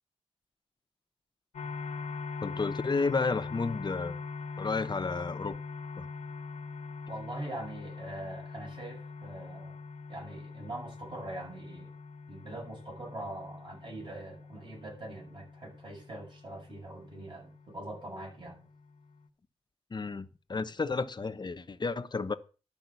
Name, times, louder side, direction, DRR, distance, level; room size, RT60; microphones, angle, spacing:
sound 1, 1.5-19.3, left 4 dB, 80° left, 1.1 m, -43 dB
voice 1, 2.4-4.1 4.6-5.5 6.0-6.1 19.9-22.3, left 4 dB, 40° left, 1.0 m, -32 dB
voice 2, 7.1-9.8 10.1-11.9 12.3-18.6, right 1 dB, 45° right, 7.7 m, -43 dB
12.0 x 5.3 x 8.4 m
wide cardioid pair, 95°, 11 cm